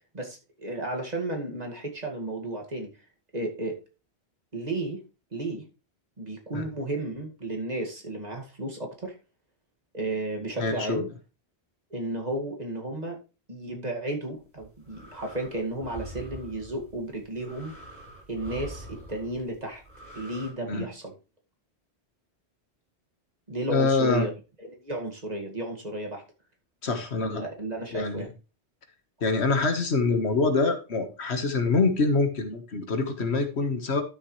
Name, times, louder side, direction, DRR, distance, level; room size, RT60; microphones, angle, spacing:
voice 1, 0.1-2.9 3.3-3.8 4.5-5.0 5.3-5.6 6.2-9.1 9.9-11.1 11.9-13.2 13.5-17.7 18.3-19.8 20.1-21.1 23.5-24.3 24.6-26.2 27.2-28.3, right 1 dB, 40° right, 1 dB, 2.2 m, -33 dB
voice 2, 10.6-11.0 20.7-20.9 23.7-24.3 26.8-27.4 27.9-28.3 29.2-34.0, left 3 dB, 80° left, 7 dB, 1.7 m, -25 dB
sound 1, 14.4-20.5, right 1 dB, 85° right, 5.7 m, -45 dB
12.0 x 6.9 x 3.2 m, 0.31 s
omnidirectional pair, 1.1 m